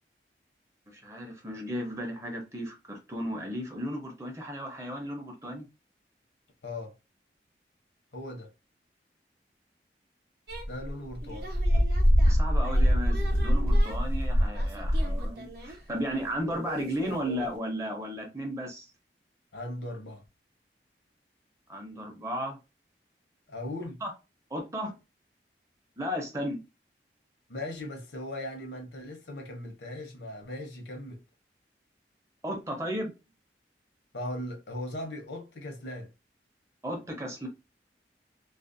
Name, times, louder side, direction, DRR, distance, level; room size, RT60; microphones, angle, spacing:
voice 1, 0.9-5.7 12.2-18.9 21.7-22.6 24.0-24.1 24.5-25.0 26.0-26.6 32.4-33.1 36.8-37.5, equal, 15° right, 0.5 m, -35 dB
voice 2, 6.6-6.9 8.1-8.5 10.7-11.6 19.5-20.2 23.5-24.0 27.5-31.2 34.1-36.1, left 1 dB, 85° left, 0.8 m, -38 dB
sound 1, 10.5-15.7 16.5-17.5, equal, 65° right, 0.6 m, -25 dB
2.4 x 2.0 x 2.4 m
head